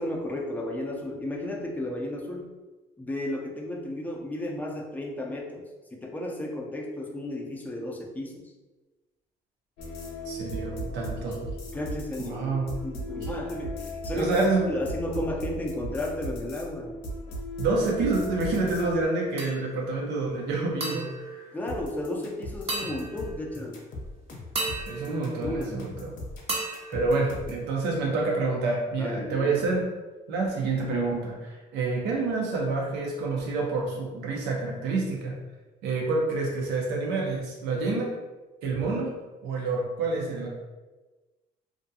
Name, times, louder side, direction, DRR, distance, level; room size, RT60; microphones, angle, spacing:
voice 1, 0.0-2.5 3.0-5.7 5.9-8.5 11.7-14.4 14.7-17.0 21.5-23.8 25.1-25.8 29.0-29.6, left 1 dB, 10° left, 0 dB, 0.4 m, -33 dB
sound 1, 9.8-19.1, equal, 90° left, 0.6 m, -36 dB
voice 2, 10.3-11.5 12.2-12.7 13.1-13.3 14.1-14.8 17.6-21.5 24.9-26.1 26.9-29.9 30.3-35.3 35.8-38.2 38.6-39.2 39.4-40.5, right 3 dB, 85° right, -1 dB, 0.7 m, -28 dB
sound 2, 19.4-20.0 20.8-22.2 22.7-23.7 24.5-26.0 26.5-27.9, right 2 dB, 35° right, 0.6 m, -36 dB
sound 3, 21.7-27.7, left 2 dB, 50° left, 0.6 m, -40 dB
2.5 x 2.2 x 2.6 m, 1.2 s
cardioid pair, 110°, 17 cm